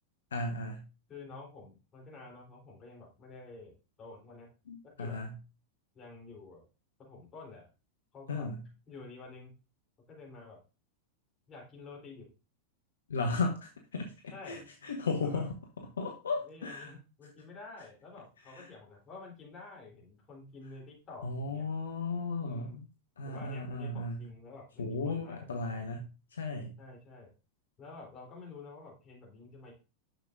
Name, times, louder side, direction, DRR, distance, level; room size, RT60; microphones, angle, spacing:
voice 1, 0.3-0.8 4.7-5.4 8.3-8.6 13.1-15.5 16.0-16.9 18.5-18.7 21.2-22.9 23.2-24.2 24.8-26.8, left 3 dB, 70° left, 3 dB, 0.9 m, -35 dB
voice 2, 1.1-4.5 4.8-5.2 5.9-6.6 7.0-7.7 8.1-8.5 8.9-9.5 10.1-10.6 11.5-12.3 14.3-14.7 15.1-15.4 16.4-21.7 22.4-22.8 23.2-25.5 26.8-27.3 27.8-29.7, left 3 dB, 25° left, -2 dB, 3.4 m, -49 dB
10.0 x 6.7 x 2.5 m, 0.32 s
figure-of-eight pair, 90°, 0 cm